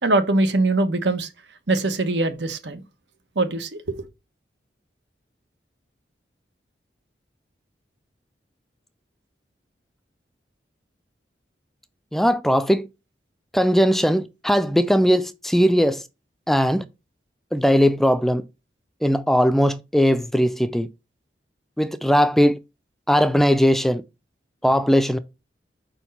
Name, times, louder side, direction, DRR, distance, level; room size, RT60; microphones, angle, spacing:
voice 1, 0.0-1.3 1.7-2.8 3.4-4.1, right 2 dB, 80° right, 1.1 m, -22 dB
voice 2, 12.1-12.9 13.5-16.0 16.5-16.8 17.5-18.4 19.0-20.9 21.8-22.6 23.1-24.0 24.6-25.2, equal, ahead, 0.4 m, -19 dB
5.1 x 4.5 x 5.5 m
head